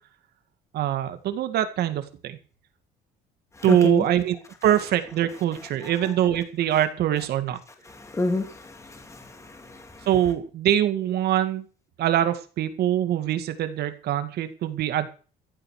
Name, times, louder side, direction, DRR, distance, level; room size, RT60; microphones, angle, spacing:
voice 1, 0.7-2.4 3.6-4.4 4.6-7.6 10.1-11.7 12.0-15.1, right 11 dB, 70° right, 10 dB, 2.0 m, -23 dB
voice 2, 3.7-4.0 5.8-5.9 7.9-10.1, left 2 dB, 15° left, 5 dB, 2.5 m, -29 dB
15.0 x 9.1 x 6.5 m, 0.38 s
cardioid pair, 110°, 17 cm